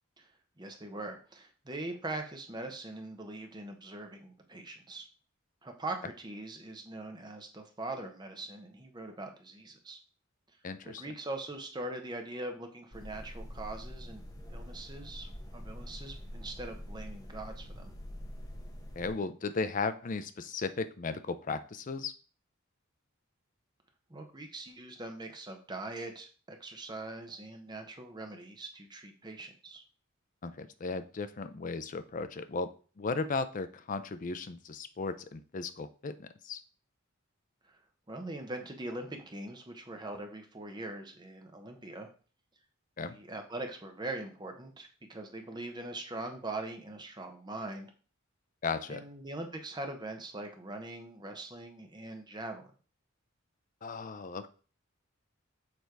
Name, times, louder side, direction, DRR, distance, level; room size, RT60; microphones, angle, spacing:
voice 1, 0.6-5.1 5.6-10.0 10.8-14.2 14.5-17.9 24.1-29.8 37.6-37.8 38.1-42.1 43.0-47.9 48.9-52.7, right 2 dB, 20° right, 4 dB, 0.9 m, -42 dB
voice 2, 10.6-11.0 19.0-22.1 30.4-36.6 43.0-43.2 48.6-49.0 53.8-54.5, left 4 dB, 40° left, 11 dB, 0.4 m, -36 dB
sound 1, 12.9-19.1, equal, 20° left, 0.9 m, -45 dB
6.6 x 3.4 x 4.6 m, 0.38 s
head